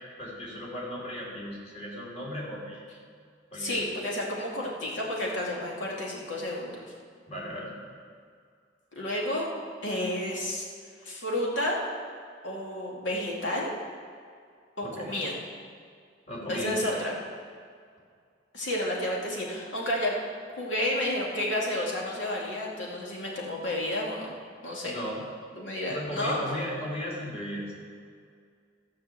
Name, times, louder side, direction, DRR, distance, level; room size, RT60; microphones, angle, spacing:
voice 1, 0.2-2.8 3.5-3.8 7.3-7.7 14.8-15.2 16.3-17.0 24.8-25.2 25.9-27.6, equal, 35° left, -5 dB, 3.3 m, -36 dB
voice 2, 3.6-6.8 9.0-9.5 9.8-10.6 11.0-11.8 12.4-13.7 14.8-15.4 16.5-17.1 18.5-20.2 20.6-24.3 24.6-24.9 25.6-26.4, left 1 dB, 90° left, -3 dB, 2.5 m, -31 dB
13.5 x 5.8 x 7.6 m, 2.2 s
head